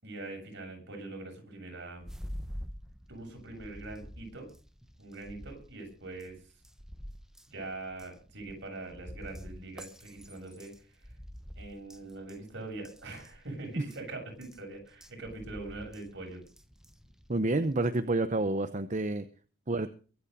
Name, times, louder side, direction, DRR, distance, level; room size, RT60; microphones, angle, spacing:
voice 1, 0.0-2.1 3.1-4.5 5.0-6.6 7.5-11.1 11.6-16.4, right 2 dB, 60° right, 3 dB, 7.2 m, -43 dB
sound 1, 1.9-17.9, equal, 5° right, 1.1 m, -48 dB
voice 2, 17.3-19.3 19.7-19.9, right 2 dB, 35° right, 10 dB, 0.8 m, -29 dB
23.5 x 8.5 x 5.3 m, 0.38 s
head